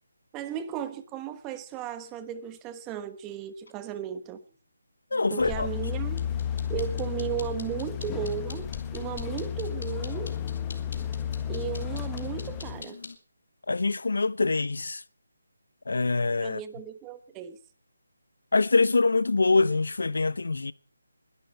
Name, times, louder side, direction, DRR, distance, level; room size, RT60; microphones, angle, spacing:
voice 1, 0.3-4.4 5.3-6.3 6.7-10.4 11.5-13.0 16.4-17.6, right 10 dB, 10° right, 1.1 m, -35 dB
voice 2, 5.1-5.7 13.7-15.0 15.9-16.6 18.5-20.7, left 3 dB, 70° left, 1.0 m, -24 dB
sound 1, 5.1-13.2, left 4 dB, 55° left, 3.0 m, -44 dB
sound 2, 5.4-12.8, left 9 dB, 10° left, 1.0 m, -33 dB
21.5 x 11.5 x 5.8 m
hypercardioid pair, 170°, 0 cm